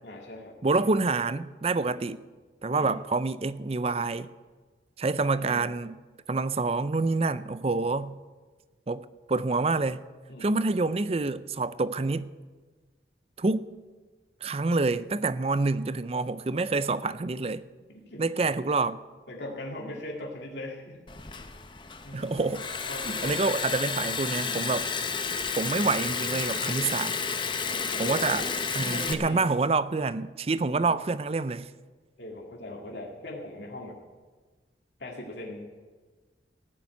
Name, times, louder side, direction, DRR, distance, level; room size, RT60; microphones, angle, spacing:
voice 1, 0.0-0.6 2.7-2.9 5.2-5.7 10.3-10.8 17.8-18.2 19.3-21.0 22.0-22.4 22.9-24.2 26.6-26.9 27.6-28.4 28.9-29.5 30.7-31.0 32.2-34.0 35.0-35.6, left 1 dB, 80° left, 2.3 m, -40 dB
voice 2, 0.6-2.2 2.6-4.3 5.0-6.0 6.3-8.2 8.9-10.0 10.4-12.3 13.4-13.7 14.4-17.6 18.2-19.0 22.1-22.6 23.0-24.9 25.6-27.2 28.0-28.4 28.8-31.7, right 3 dB, 35° right, 0.5 m, -27 dB
Liquid, 21.1-29.1, left 5 dB, 25° left, 0.8 m, -31 dB
16.0 x 7.1 x 9.3 m
head